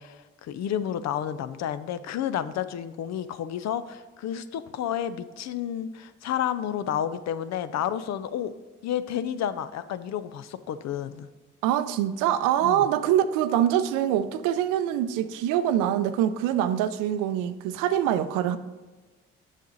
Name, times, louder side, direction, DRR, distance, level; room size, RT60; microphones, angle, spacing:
voice 1, 0.0-8.5 8.8-11.3 12.6-12.9, left 10 dB, 60° left, 13 dB, 0.5 m, -31 dB
voice 2, 11.6-18.6, right 11 dB, 80° right, 12 dB, 0.5 m, -24 dB
7.2 x 5.9 x 3.9 m, 1.2 s
hypercardioid pair, 55°, 31 cm